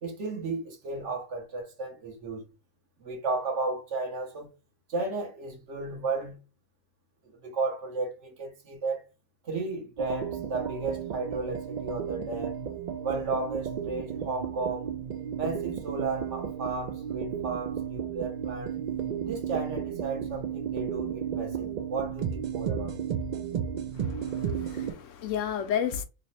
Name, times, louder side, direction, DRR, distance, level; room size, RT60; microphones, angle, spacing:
voice 1, 0.0-2.4 3.0-4.5 4.9-6.4 7.4-9.0 9.4-12.6 13.0-14.9 15.4-18.8 19.2-23.0, right 3 dB, 65° right, 1.2 m, -34 dB
sound 1, 10.0-24.9, right 8 dB, 80° right, 0.4 m, -33 dB
voice 2, 23.9-26.0, left 8 dB, 75° left, 0.9 m, -32 dB
3.2 x 2.0 x 4.0 m
omnidirectional pair, 1.3 m